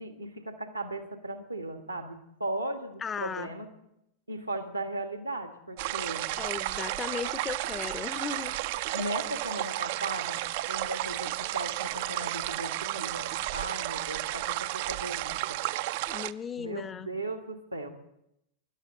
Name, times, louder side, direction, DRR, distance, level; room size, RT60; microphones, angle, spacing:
voice 1, 0.0-3.7 4.3-6.3 8.9-10.4 10.7-15.6 16.6-17.9, right 2 dB, 85° right, 6 dB, 1.7 m, -37 dB
voice 2, 3.0-3.5 6.4-8.6 16.1-17.1, left 6 dB, 20° left, 16 dB, 0.6 m, -36 dB
sound 1, 5.8-16.3, right 16 dB, 50° right, 0.4 m, -33 dB
23.0 x 12.0 x 3.8 m, 0.80 s
figure-of-eight pair, 90°, 0 cm